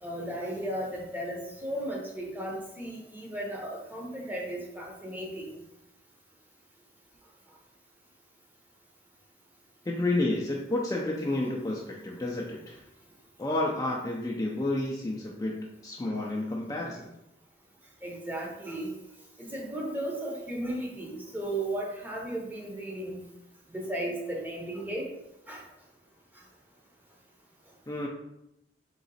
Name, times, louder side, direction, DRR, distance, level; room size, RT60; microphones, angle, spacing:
voice 1, 0.0-5.5 16.1-16.2 18.0-19.0 19.4-23.2 23.7-25.1 25.5-25.6, right 1 dB, 10° right, -1 dB, 0.7 m, -35 dB
voice 2, 9.9-12.8 13.4-17.1 27.9-28.1, left 2 dB, 20° left, -2 dB, 0.4 m, -30 dB
3.9 x 3.0 x 4.0 m, 0.83 s
head